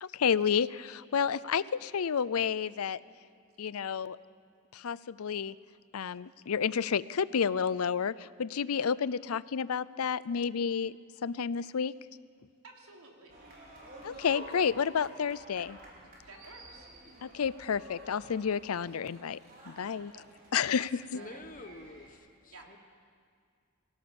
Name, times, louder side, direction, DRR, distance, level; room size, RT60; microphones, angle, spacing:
voice 1, 0.0-3.0 3.6-4.2 4.7-5.6 5.9-10.9 11.2-11.9 14.0-15.8 17.2-19.4 19.7-20.1 20.5-21.2, left 7 dB, 90° left, 19 dB, 0.5 m, -30 dB
voice 2, 12.6-13.3 16.3-16.9 19.9-20.3 21.1-21.4 22.5-22.7, right 3 dB, 85° right, 0 dB, 3.6 m, -52 dB
sound 1, 13.3-22.1, right 1 dB, 40° right, 5.0 m, -51 dB
voice 3, 21.1-22.8, left 2 dB, 40° left, 8 dB, 1.2 m, -48 dB
24.0 x 17.0 x 7.1 m, 2.2 s
head